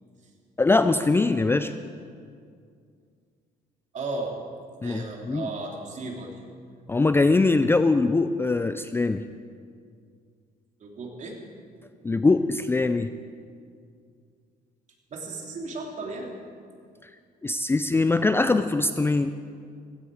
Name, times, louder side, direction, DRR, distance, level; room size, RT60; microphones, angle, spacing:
voice 1, 0.6-1.7 4.8-5.5 6.9-9.2 12.0-13.1 17.4-19.3, left 3 dB, 15° left, 10 dB, 0.4 m, -22 dB
voice 2, 3.9-4.4 4.8-6.4 10.8-11.4 15.1-16.4, right 3 dB, 45° right, 1 dB, 3.0 m, -35 dB
16.5 x 16.0 x 4.9 m, 2.2 s
cardioid pair, 110°, 17 cm